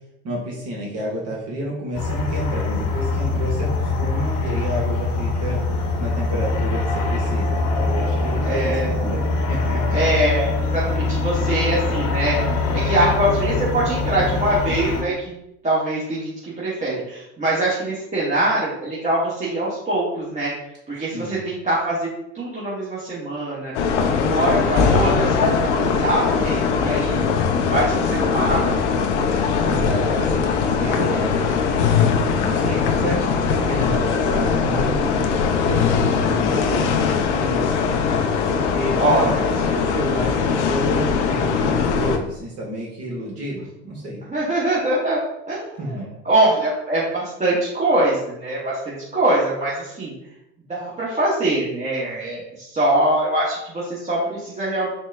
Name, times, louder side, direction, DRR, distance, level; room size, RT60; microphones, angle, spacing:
voice 1, 0.2-5.6 6.0-9.2 9.5-10.0 21.1-21.4 29.6-31.9 32.4-37.9 38.5-44.2 45.8-46.1, equal, 45° right, -3 dB, 1.1 m, -30 dB
sound 1, 1.9-15.0, left 3 dB, 50° left, 0.9 m, -23 dB
voice 2, 8.4-8.9 9.9-12.4 12.7-15.3 15.6-20.5 20.9-22.1 22.3-23.9 24.2-27.4 27.7-28.6 30.8-31.0 39.0-39.5 44.3-50.1 50.7-54.9, right 1 dB, 20° right, -8 dB, 1.1 m, -23 dB
sound 2, 23.7-42.2, left 5 dB, 85° left, 0.5 m, -20 dB
4.2 x 2.1 x 3.3 m, 0.84 s
hypercardioid pair, 85°, 35 cm